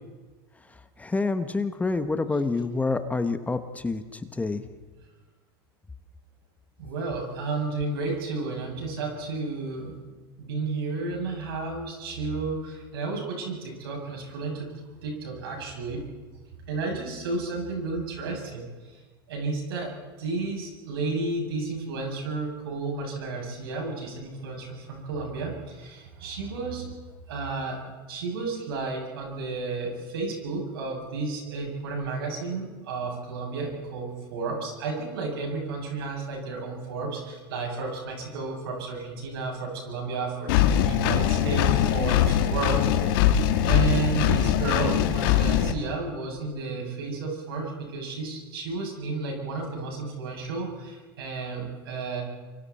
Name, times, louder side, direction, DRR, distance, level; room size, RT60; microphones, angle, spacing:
voice 1, 1.0-4.6, left 3 dB, 10° left, 1.3 m, -27 dB
voice 2, 6.8-14.7 15.0-16.0 16.7-19.0 19.3-27.0 27.3-27.8 28.1-43.4 43.7-52.2, right 3 dB, 80° right, 7.9 m, -32 dB
Engine, 40.5-45.7, left 10 dB, 65° left, 1.9 m, -22 dB
29.0 x 25.0 x 4.4 m
hypercardioid pair, 100°, 12 cm